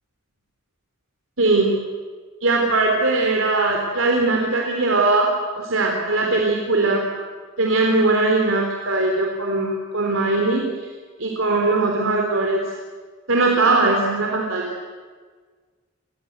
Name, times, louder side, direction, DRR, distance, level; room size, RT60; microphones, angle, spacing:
voice 1, 1.4-1.7 2.4-5.3 5.6-7.0 7.6-10.7 11.2-12.6 13.3-14.7, right 3 dB, 85° right, 0 dB, 3.6 m, -20 dB
29.5 x 23.0 x 8.1 m, 1.5 s
head